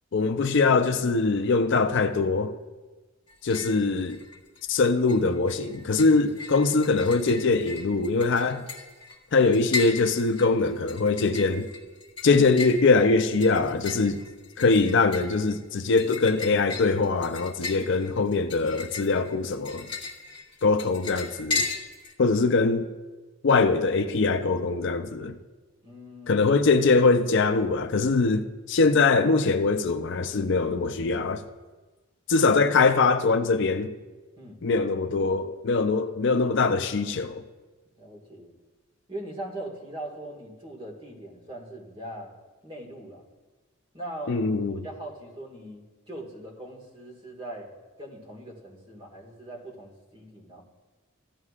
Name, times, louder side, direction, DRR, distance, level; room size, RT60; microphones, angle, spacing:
voice 1, 0.1-2.5 3.4-4.2 4.7-8.6 9.3-11.7 12.2-14.2 14.6-19.9 20.6-21.7 22.2-22.9 23.4-25.4 26.3-31.4 32.3-33.9 34.6-37.4 44.3-44.8, left 3 dB, 55° left, 0.5 m, -22 dB
sound 1, 3.3-3.8 4.1-4.8 5.1-22.1, left 4 dB, 25° left, 1.4 m, -36 dB
voice 2, 25.8-26.4 34.4-34.6 38.0-38.6 39.1-42.3 42.6-43.2 43.9-44.4 44.7-47.7 48.0-50.6, right 1 dB, 25° right, 1.8 m, -40 dB
15.5 x 11.5 x 2.4 m
head